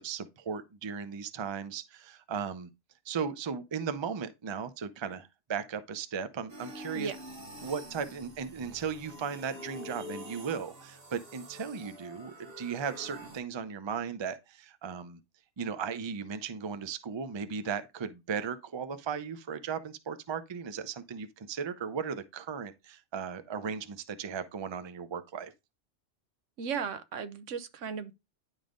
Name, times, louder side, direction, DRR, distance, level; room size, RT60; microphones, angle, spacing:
voice 1, 0.0-2.7 3.1-7.1 7.6-15.2 15.6-25.5, right 6 dB, 35° right, 0.5 m, -36 dB
sound 1, 6.5-13.4, equal, 50° right, 1.6 m, -46 dB
voice 2, 26.6-28.1, right 6 dB, 80° right, 1.2 m, -36 dB
10.5 x 3.5 x 3.8 m
omnidirectional pair, 1.3 m